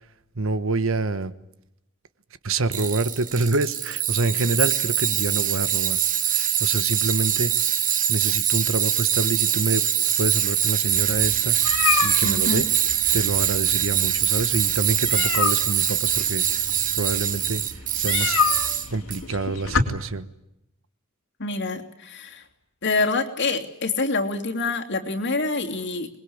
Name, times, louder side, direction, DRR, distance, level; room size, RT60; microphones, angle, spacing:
voice 1, 0.3-1.3 2.4-6.0 6.3-7.5 8.1-9.8 10.2-12.6 13.1-16.7 16.9-17.6 17.9-18.4 18.9-20.3, right 3 dB, 65° right, 14 dB, 1.3 m, -27 dB
Tools, 2.7-19.2, right 10 dB, 40° right, 1.3 m, -23 dB
sound 1, 10.9-19.8, left 6 dB, 75° left, 3.5 m, -29 dB
voice 2, 12.2-12.6 21.4-22.4 22.8-26.1, left 3 dB, 55° left, 3 dB, 3.0 m, -26 dB
26.5 x 21.5 x 8.7 m, 0.84 s
head